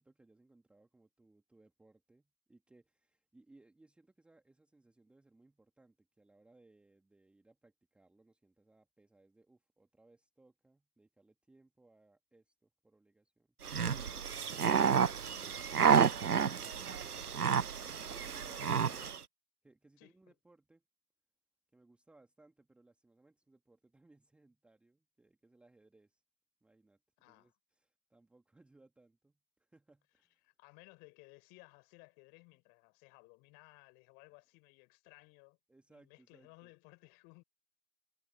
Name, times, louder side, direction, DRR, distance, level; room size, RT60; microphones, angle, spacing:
voice 1, 0.0-17.4 17.9-18.8 19.6-20.8 21.7-26.2 26.6-30.5 35.7-36.7, right 2 dB, ahead, 2.6 m, -66 dB
sound 1, 13.6-19.2, right 7 dB, 85° right, 0.7 m, -30 dB
voice 2, 18.6-19.2 20.0-20.3 27.2-27.5 30.4-35.6 35.9-37.4, left 29 dB, 20° left, 5.2 m, -59 dB
figure-of-eight pair, 130°, 44 cm